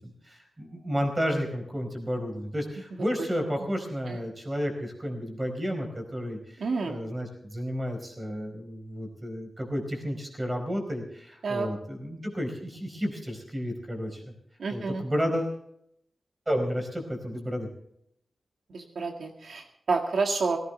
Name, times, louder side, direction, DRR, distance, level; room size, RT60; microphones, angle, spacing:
voice 1, 0.0-14.3 14.7-15.6 16.5-17.7, equal, 20° right, 3 dB, 4.4 m, -32 dB
voice 2, 6.6-7.0 11.4-11.7 14.6-15.0 18.7-20.6, right 4 dB, 70° right, 3 dB, 1.9 m, -29 dB
18.0 x 17.0 x 3.4 m, 0.72 s
wide cardioid pair, 140°, 0 cm